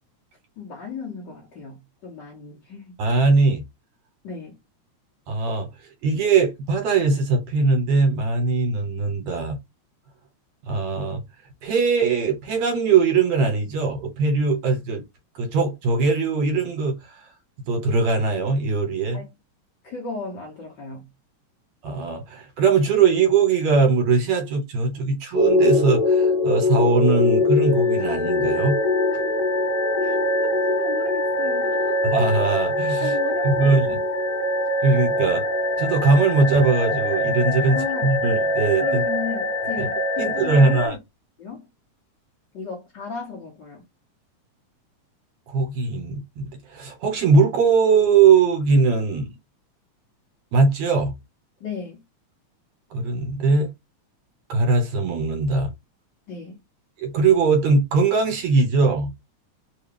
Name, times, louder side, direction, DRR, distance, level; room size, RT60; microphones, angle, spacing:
voice 1, 0.6-3.0 4.2-4.6 19.1-19.3 19.8-21.1 30.0-30.2 30.4-32.1 33.0-34.0 37.7-38.1 38.8-41.0 41.4-41.7 42.5-43.8 51.6-52.0 56.3-56.6, left 5 dB, 70° left, 1.0 m, -35 dB
voice 2, 3.0-3.6 5.3-5.7 6.0-9.6 10.7-11.2 11.6-15.0 15.4-17.0 17.7-19.2 21.8-28.8 32.1-33.1 33.4-33.9 34.8-35.4 35.8-38.8 39.8-39.9 40.2-41.0 45.5-49.3 50.5-51.1 52.9-53.7 54.5-55.7 57.0-59.1, right 4 dB, 70° right, 2.3 m, -20 dB
sound 1, 25.3-40.9, left 2 dB, 45° left, 1.3 m, -23 dB
4.7 x 2.3 x 3.3 m
omnidirectional pair, 3.3 m